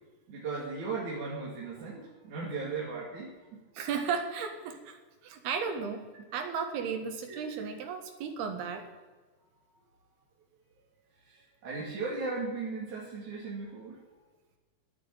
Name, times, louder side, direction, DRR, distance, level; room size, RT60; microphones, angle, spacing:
voice 1, 0.3-3.6 5.7-5.8 7.3-7.7 11.2-14.0, right 4 dB, 50° right, -5 dB, 3.5 m, -37 dB
voice 2, 3.8-5.0 5.2-6.0 6.3-8.9, right 6 dB, 70° right, 5 dB, 3.4 m, -34 dB
13.0 x 8.7 x 9.0 m, 1.3 s
omnidirectional pair, 5.1 m